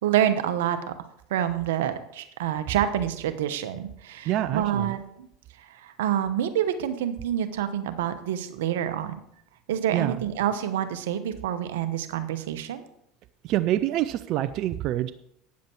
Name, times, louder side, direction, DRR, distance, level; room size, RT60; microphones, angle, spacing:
voice 1, 0.0-0.9 1.3-5.3 5.6-9.1 9.7-12.8, right 10 dB, 80° right, 10 dB, 0.9 m, -27 dB
voice 2, 4.3-4.9 9.9-10.2 13.4-15.1, right 13 dB, 55° right, 12 dB, 0.5 m, -26 dB
9.4 x 7.3 x 4.5 m, 0.73 s
hypercardioid pair, 85°, 0 cm